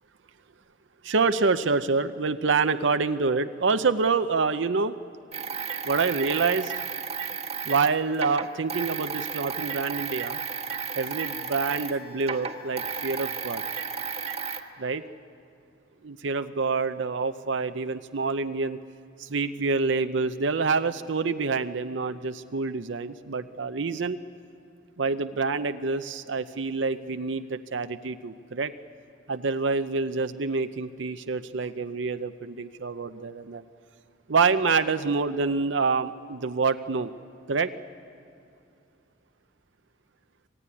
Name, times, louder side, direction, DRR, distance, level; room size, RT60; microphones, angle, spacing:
voice 1, 1.0-5.0 5.8-6.7 7.6-10.4 10.9-13.6 14.8-15.0 16.0-18.8 19.2-24.2 25.0-28.7 29.3-33.6 34.3-37.1 37.5-37.7, right 4 dB, 75° right, 10 dB, 0.7 m, -27 dB
sound 1, 5.3-12.0 12.2-14.6, right 6 dB, 35° right, 1.3 m, -33 dB
Wind instrument woodwind instrument, 10.4-14.7, left 5 dB, 55° left, 5.9 m, -48 dB
26.0 x 18.5 x 9.8 m, 2.6 s
head